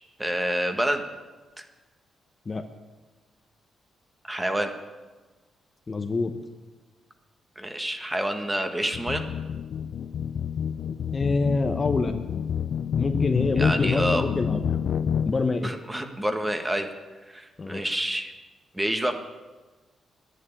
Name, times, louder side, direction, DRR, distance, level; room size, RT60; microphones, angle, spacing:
voice 1, 0.2-1.0 1.6-1.7 4.2-4.7 7.5-9.2 13.6-14.2 15.6-16.9 17.3-18.3 18.7-19.1, right 1 dB, 10° right, 6 dB, 1.5 m, -28 dB
voice 2, 5.9-6.3 11.1-12.1 13.0-14.6 15.3-15.8 17.6-17.8, left 3 dB, 30° left, 7 dB, 0.9 m, -25 dB
sound 1, 8.9-15.3, left 8 dB, 65° left, 0.4 m, -28 dB
10.5 x 10.5 x 9.8 m, 1.2 s
cardioid pair, 95°, 0 cm